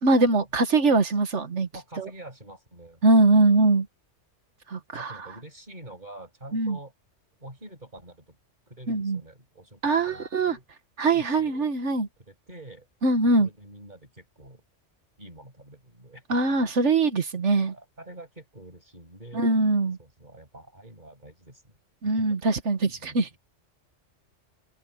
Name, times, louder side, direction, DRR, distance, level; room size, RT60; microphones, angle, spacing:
voice 1, 0.0-1.7 2.0-2.1 3.0-3.9 4.7-5.2 6.5-6.8 8.9-9.2 9.8-10.6 11.0-12.1 13.0-13.5 16.3-17.7 19.3-20.0 22.0-23.3, right 3 dB, 65° right, 1.9 m, -22 dB
voice 2, 1.7-3.4 5.0-6.9 7.4-8.4 8.7-10.6 11.1-11.6 12.3-12.9 13.4-14.6 15.2-16.6 17.7-19.4 20.0-21.8 22.2-22.3 23.0-23.4, right 1 dB, 35° right, 7.5 m, -46 dB
open air
omnidirectional pair, 1.3 m